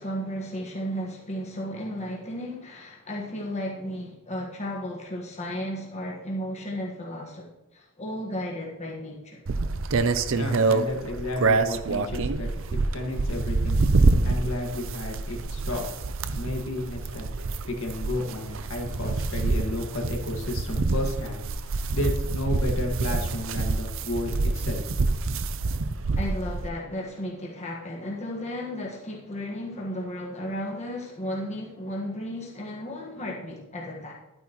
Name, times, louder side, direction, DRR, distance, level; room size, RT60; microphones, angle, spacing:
voice 1, 0.0-7.5 7.7-9.4 26.1-34.1, equal, 30° left, -2 dB, 1.5 m, -34 dB
sound 1, 9.5-26.7, right 3 dB, 60° right, 0.6 m, -26 dB
voice 2, 10.3-13.8 14.2-15.9 16.3-17.3 17.7-24.8, left 1 dB, 65° left, 1 dB, 1.9 m, -32 dB
12.0 x 9.6 x 3.1 m, 1.0 s
head